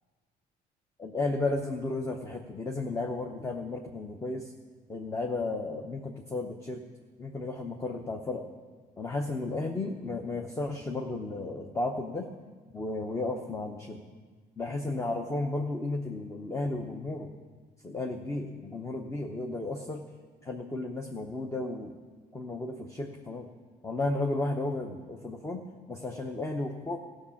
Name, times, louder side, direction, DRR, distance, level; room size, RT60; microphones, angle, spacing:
voice 1, 1.0-4.5 4.9-6.8 7.2-8.4 9.0-12.3 12.7-14.0 14.6-17.3 17.8-20.0 20.4-22.0 22.3-23.5 23.8-27.0, left 2 dB, 15° left, 3 dB, 0.8 m, -33 dB
14.5 x 6.3 x 7.2 m, 1.4 s
cardioid pair, 110°, 17 cm